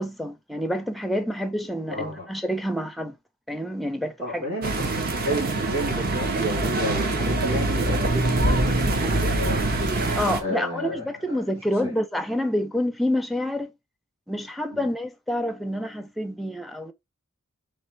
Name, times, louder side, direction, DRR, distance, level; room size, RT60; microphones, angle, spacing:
voice 1, 0.0-3.2 3.5-4.4 10.2-13.7 14.3-16.9, equal, ahead, 0.5 m, -28 dB
voice 2, 1.9-2.3 4.2-9.7 10.4-11.4 11.8-11.9 14.7-14.9, equal, 70° right, 1.9 m, -31 dB
sound 1, 4.6-10.4, right 2 dB, 45° right, 0.8 m, -24 dB
3.7 x 3.2 x 4.4 m
head